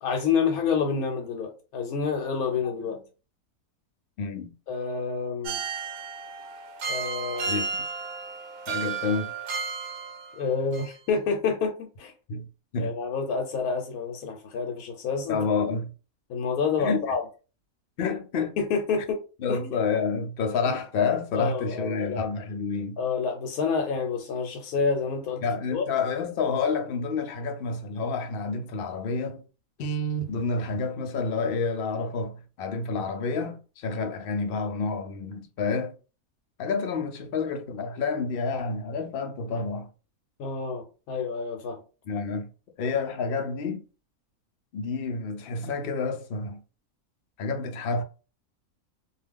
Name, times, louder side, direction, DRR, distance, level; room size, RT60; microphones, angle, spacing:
voice 1, 0.0-3.0 4.7-5.6 6.9-7.7 10.4-12.1 12.8-15.4 16.3-17.2 18.6-19.2 19.5-19.7 21.3-22.2 23.0-25.4 25.7-25.8 40.4-41.8, left 5 dB, 85° left, 1.1 m, -28 dB
voice 2, 4.2-4.5 7.5-7.8 8.7-9.3 12.3-12.5 12.7-13.0 15.3-15.9 16.8-17.1 18.0-18.6 19.0-19.1 19.4-23.0 25.4-29.4 29.8-35.9 36.6-39.9 42.1-42.5 42.8-43.8 44.7-46.6 47.4-48.0, left 4 dB, 60° left, 0.6 m, -29 dB
sound 1, 5.4-10.5 10.7-10.9, right 5 dB, 90° right, 1.1 m, -33 dB
2.4 x 2.3 x 3.4 m
omnidirectional pair, 1.5 m